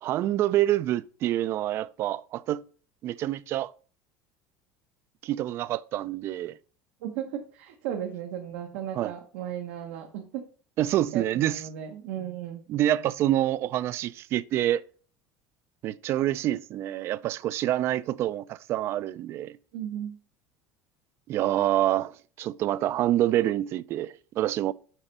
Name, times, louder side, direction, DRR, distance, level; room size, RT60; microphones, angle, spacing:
voice 1, 0.0-2.6 3.0-3.7 5.2-6.6 8.9-9.1 10.8-11.6 12.7-14.8 15.8-19.6 21.3-24.7, right 13 dB, 45° right, 0.3 m, -27 dB
voice 2, 7.0-10.5 11.1-12.6 19.7-20.2, right 10 dB, 85° right, 1.0 m, -35 dB
7.3 x 4.4 x 5.2 m
cardioid pair, 140°, 6 cm